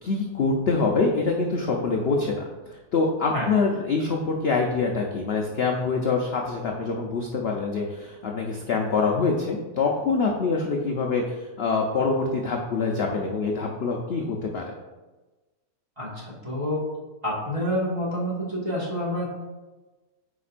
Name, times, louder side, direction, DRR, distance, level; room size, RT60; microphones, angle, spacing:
voice 1, 0.0-2.4 2.9-14.6, left 4 dB, 60° left, 1 dB, 0.7 m, -25 dB
voice 2, 16.0-16.8 17.2-19.3, equal, 20° right, -6 dB, 1.6 m, -28 dB
8.2 x 5.1 x 2.5 m, 1.2 s
omnidirectional pair, 1.6 m